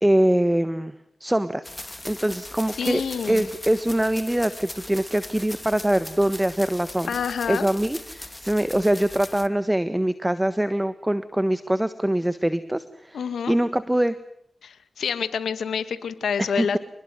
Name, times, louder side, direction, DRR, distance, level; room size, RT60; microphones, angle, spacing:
voice 1, 0.0-0.9 1.2-1.7 2.0-3.0 3.3-7.1 7.5-14.2 16.4-16.7, right 1 dB, 15° right, 13 dB, 1.5 m, -23 dB
sound 1, 1.6-9.5, left 1 dB, 20° left, 2.2 m, -39 dB
voice 2, 2.7-3.4 7.1-7.7 13.1-13.6 14.6-16.8, left 7 dB, 85° left, 12 dB, 2.1 m, -27 dB
28.5 x 20.5 x 9.5 m, 0.68 s
cardioid pair, 45°, 0 cm